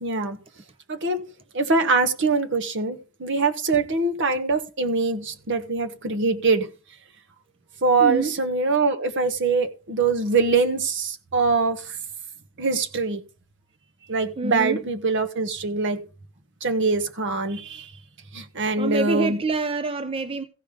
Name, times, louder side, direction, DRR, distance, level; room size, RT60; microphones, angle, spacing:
voice 1, 0.0-0.4 0.9-1.2 1.5-6.7 7.8-12.0 12.6-13.2 14.1-16.0 16.6-17.9 18.3-19.4, right 4 dB, 60° right, 1.1 m, -23 dB
voice 2, 8.0-8.3 14.4-14.8 18.8-20.4, right 3 dB, 25° right, 0.5 m, -26 dB
15.5 x 5.3 x 5.0 m
head